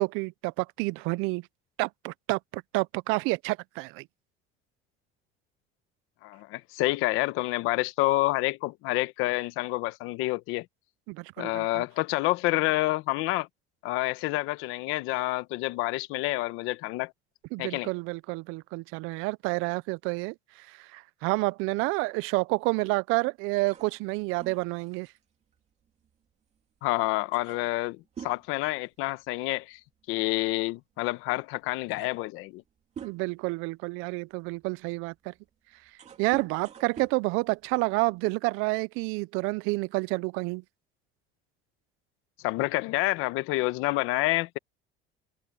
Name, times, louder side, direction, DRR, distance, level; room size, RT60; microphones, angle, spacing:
voice 1, 0.0-1.5 1.8-4.1 11.1-11.8 17.5-25.1 33.0-35.3 36.2-40.6, right 25 dB, 85° right, 0.4 m, -29 dB
voice 2, 6.2-10.6 11.4-13.5 13.8-17.1 17.6-17.9 26.8-29.8 30.1-32.6 42.4-44.6, left 20 dB, 85° left, 1.0 m, -28 dB
sound 1, 23.5-26.6 26.9-27.0 27.3-29.5 29.8-30.0 31.0-31.1 31.6-33.5 34.1-38.2, right 7 dB, 35° right, 2.7 m, -48 dB
cardioid pair, 165°, 21 cm